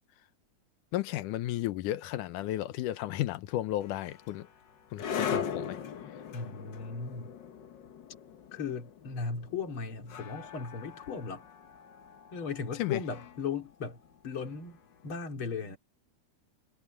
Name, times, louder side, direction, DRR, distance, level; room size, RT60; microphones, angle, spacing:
voice 1, 0.9-4.5 4.9-5.8 12.8-13.0, left 14 dB, 85° left, 2.4 m, -33 dB
sound 1, 3.8-14.9, left 7 dB, 60° left, 1.2 m, -40 dB
voice 2, 6.3-7.3 8.5-11.5 12.3-14.0 14.2-15.8, left 5 dB, 40° left, 3.7 m, -37 dB
omnidirectional pair, 3.6 m